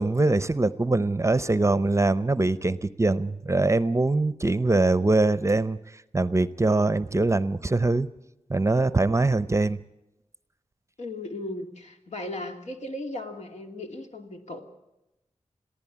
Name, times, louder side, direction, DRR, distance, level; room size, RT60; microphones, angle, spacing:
voice 1, 0.0-5.8 6.1-8.1 8.5-9.8, right 2 dB, 25° right, 16 dB, 0.7 m, -23 dB
voice 2, 11.0-14.6, left 1 dB, 75° left, 3 dB, 2.8 m, -36 dB
22.5 x 15.0 x 8.6 m, 0.92 s
wide cardioid pair, 105°, 12 cm